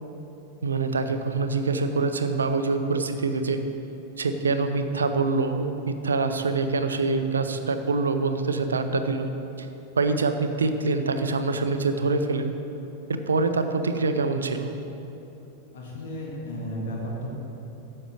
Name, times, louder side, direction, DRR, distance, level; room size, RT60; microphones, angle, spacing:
voice 1, 0.6-3.6 4.2-9.3 10.0-12.5 13.1-14.7, right 3 dB, 70° right, 8 dB, 0.6 m, -25 dB
voice 2, 15.7-17.3, equal, 55° left, -2 dB, 1.7 m, -33 dB
10.0 x 6.7 x 6.3 m, 3.0 s
figure-of-eight pair, 90°, 0 cm